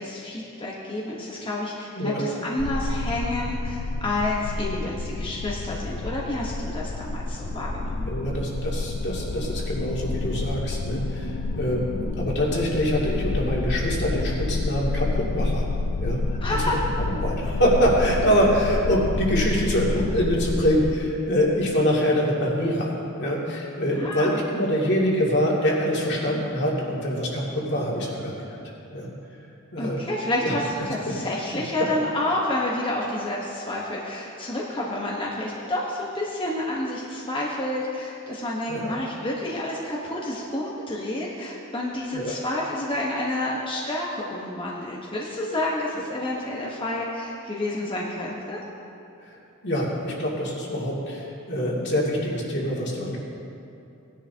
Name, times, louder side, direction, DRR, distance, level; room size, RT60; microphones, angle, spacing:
voice 1, 0.0-8.1 16.4-16.8 24.0-24.4 29.8-48.6, left 1 dB, 25° left, -4 dB, 1.1 m, -29 dB
sound 1, 2.6-21.0, left 3 dB, 90° left, 0.6 m, -29 dB
voice 2, 8.1-15.7 16.0-16.2 17.0-28.6 28.9-29.1 29.7-30.0 30.4-30.5 31.0-31.1 38.7-39.0 42.1-42.4 45.5-45.6 49.2-49.4 49.6-53.2, equal, 50° left, -4 dB, 2.4 m, -25 dB
19.0 x 10.5 x 2.8 m, 2.8 s
head